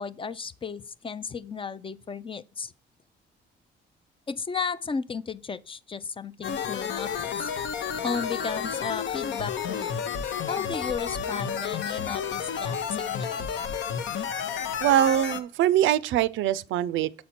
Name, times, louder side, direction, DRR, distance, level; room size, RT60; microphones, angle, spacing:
voice 1, 0.0-2.7 4.3-7.5 8.0-10.0 10.5-13.3, left 5 dB, 25° left, 0.4 m, -34 dB
sound 1, 6.4-15.4, left 7 dB, 70° left, 0.8 m, -31 dB
voice 2, 14.8-17.2, right 12 dB, 75° right, 0.4 m, -23 dB
7.4 x 4.3 x 4.3 m
cardioid pair, 90°, 20 cm